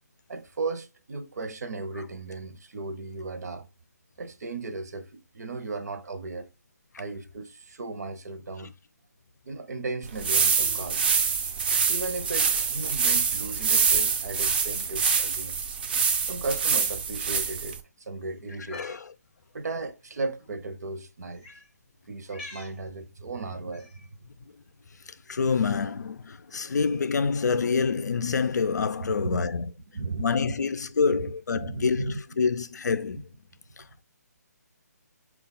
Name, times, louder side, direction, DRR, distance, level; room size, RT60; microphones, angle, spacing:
voice 1, 0.3-3.7 4.2-6.5 7.0-8.7 9.5-11.0 11.9-15.6 16.3-17.8 18.1-19.0 19.5-21.5 22.1-24.2 26.6-26.8 29.2-29.5 29.9-30.3 31.1-32.5, right 3 dB, 70° right, 0.7 m, -36 dB
sound 1, 10.0-17.8, right 6 dB, 35° right, 0.4 m, -25 dB
Cat, 18.5-19.0 20.1-20.2 21.4-21.7 22.3-22.8 23.7-24.1, left 3 dB, 10° left, 0.6 m, -45 dB
voice 2, 18.7-19.1 25.3-29.7 30.2-33.3 33.8-34.0, left 5 dB, 80° left, 0.4 m, -27 dB
4.3 x 2.3 x 4.0 m
hypercardioid pair, 160°, 9 cm